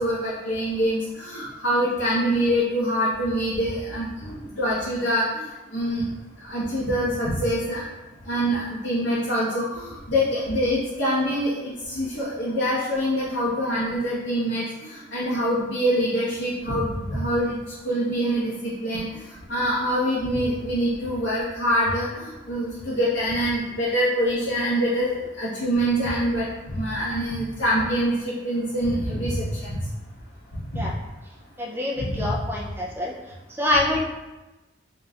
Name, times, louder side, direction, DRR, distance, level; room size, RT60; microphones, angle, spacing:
voice 1, 0.0-5.4 5.7-6.0 6.5-7.8 8.3-14.7 15.1-17.6 17.8-19.1 19.5-25.1 25.4-29.8 30.7-30.8 32.0-32.3, equal, 75° left, -10 dB, 1.2 m, -25 dB
voice 2, 31.6-33.1 33.6-34.0, left 1 dB, 10° right, -3 dB, 0.5 m, -25 dB
4.1 x 4.0 x 2.4 m, 1.1 s
head